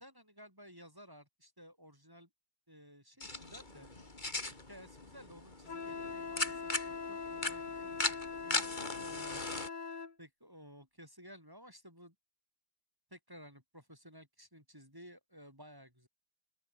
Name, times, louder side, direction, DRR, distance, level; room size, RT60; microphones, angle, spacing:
voice 1, 0.0-2.3 2.7-3.9 4.5-8.1 8.4-9.5 10.2-12.1 13.1-16.1, equal, 10° right, 6.7 m, -55 dB
sound 1, 3.2-9.7, left 2 dB, 20° left, 3.0 m, -39 dB
Wind instrument woodwind instrument, 5.7-10.1, left 5 dB, 55° left, 3.3 m, -42 dB
open air
omnidirectional pair, 2.2 m